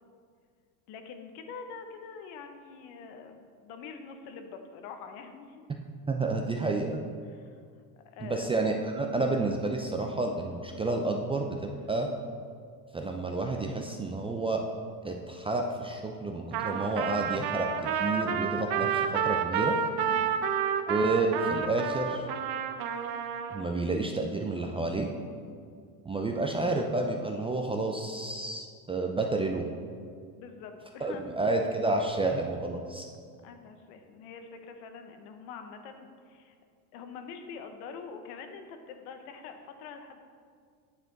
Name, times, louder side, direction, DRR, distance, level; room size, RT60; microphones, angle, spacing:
voice 1, 0.9-5.6 7.3-7.5 8.1-8.6 11.7-12.0 20.1-20.4 25.8-26.0 30.3-31.2 33.4-36.5 36.9-40.2, left 5 dB, 70° left, 6 dB, 1.1 m, -45 dB
voice 2, 6.1-7.0 8.2-12.1 12.9-14.6 15.0-17.7 18.0-19.8 20.9-22.2 23.5-25.1 26.0-29.6 31.0-33.1, right 2 dB, 15° right, 2 dB, 0.4 m, -30 dB
Trumpet, 16.5-23.6, right 7 dB, 55° right, 0.8 m, -30 dB
9.2 x 6.7 x 3.9 m, 2.1 s
supercardioid pair, 110°, 46 cm